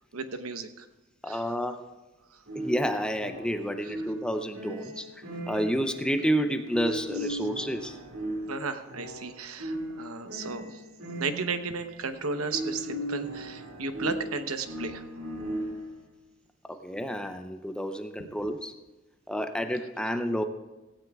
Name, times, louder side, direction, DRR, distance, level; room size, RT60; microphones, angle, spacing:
voice 1, 0.1-0.9 1.3-1.4 8.5-10.8 11.2-15.0, right 4 dB, 85° right, 8 dB, 0.9 m, -34 dB
voice 2, 1.2-1.8 2.6-5.1 5.5-8.0 16.7-18.7 19.3-20.4, equal, 5° left, 7 dB, 0.6 m, -30 dB
sound 1, 2.5-16.0, right 1 dB, 70° right, 2.3 m, -37 dB
16.5 x 16.5 x 2.4 m, 1.1 s
head